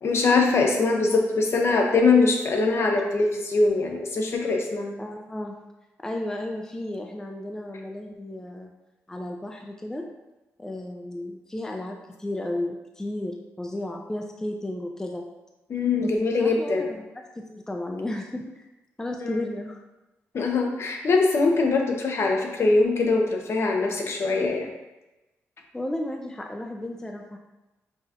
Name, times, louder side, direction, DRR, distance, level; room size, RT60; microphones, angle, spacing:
voice 1, 0.0-4.9 15.7-16.9 19.2-19.4 20.3-24.7, left 3 dB, 55° left, 2 dB, 0.7 m, -22 dB
voice 2, 5.0-5.6 6.0-8.7 9.1-10.1 10.6-15.2 16.0-16.1 16.4-17.0 17.4-18.6 19.0-19.8 25.7-27.4, left 1 dB, 10° left, 2 dB, 0.4 m, -33 dB
5.5 x 2.3 x 2.8 m, 1.0 s
cardioid pair, 90°, 5 cm